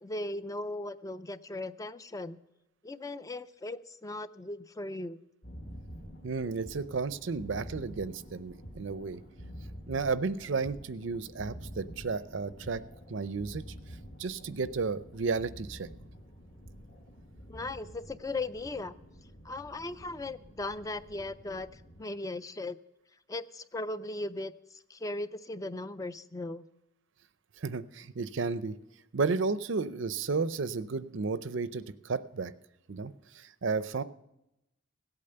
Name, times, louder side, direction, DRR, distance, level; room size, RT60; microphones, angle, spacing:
voice 1, 0.0-2.4 2.8-5.2 17.5-18.9 19.4-22.8 23.3-26.6, left 2 dB, 15° left, 13 dB, 0.4 m, -38 dB
sound 1, 5.4-22.0, equal, 45° left, 1.6 m, -48 dB
voice 2, 6.2-9.2 9.9-12.8 13.1-13.6 14.2-15.9 27.6-28.8 29.1-32.5 32.9-34.0, right 4 dB, 65° right, 15 dB, 0.6 m, -33 dB
17.0 x 8.7 x 6.8 m, 0.90 s
head